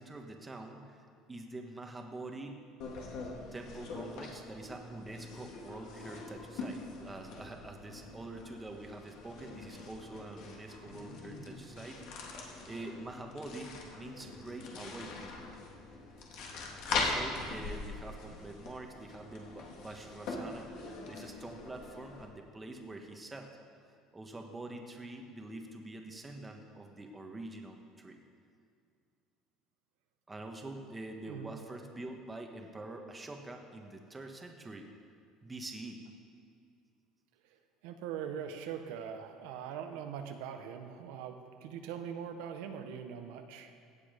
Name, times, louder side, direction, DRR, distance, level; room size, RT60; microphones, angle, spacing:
voice 1, 0.0-2.6 3.5-15.4 16.9-23.6 24.1-28.2 30.3-34.9 35.4-36.0, right 2 dB, 15° right, 3 dB, 1.2 m, -46 dB
sound 1, 2.8-22.3, left 3 dB, 60° left, 2.3 m, -42 dB
voice 2, 31.3-31.6 37.8-43.7, right 8 dB, 85° right, 6 dB, 1.1 m, -42 dB
16.5 x 8.7 x 5.1 m, 2.3 s
cardioid pair, 140°, 0 cm